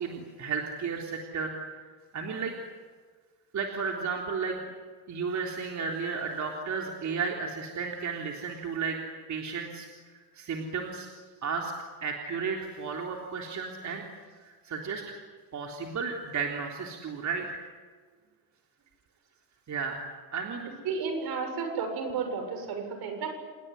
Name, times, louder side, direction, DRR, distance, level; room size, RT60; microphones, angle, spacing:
voice 1, 0.0-1.6 2.1-2.6 3.5-4.6 5.1-9.0 9.3-11.1 11.4-11.7 12.0-14.0 14.4-15.0 15.5-17.6 19.7-20.0 20.3-20.7, right 5 dB, 45° right, 1 dB, 3.6 m, -33 dB
voice 2, 20.9-23.4, right 5 dB, 70° right, 6 dB, 7.2 m, -32 dB
28.5 x 19.5 x 9.9 m, 1.5 s
cardioid pair, 115°, 38 cm